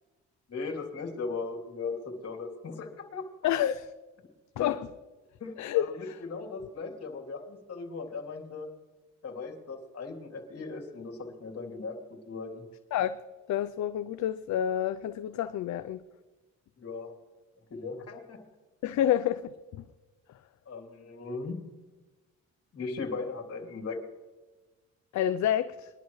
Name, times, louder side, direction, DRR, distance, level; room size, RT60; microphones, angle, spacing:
voice 1, 0.5-3.3 4.6-4.7 5.4-8.7 9.2-12.6 16.8-17.1 17.7-18.4 20.6-21.6 22.7-24.0, left 4 dB, 50° left, 1 dB, 3.2 m, -38 dB
voice 2, 3.4-3.9 4.6-4.9 5.6-6.2 12.9-13.2 13.5-16.0 18.8-19.5 25.1-25.9, left 11 dB, 70° left, 11 dB, 0.6 m, -28 dB
22.0 x 11.5 x 3.2 m, 1.2 s
cardioid pair, 90°, 30 cm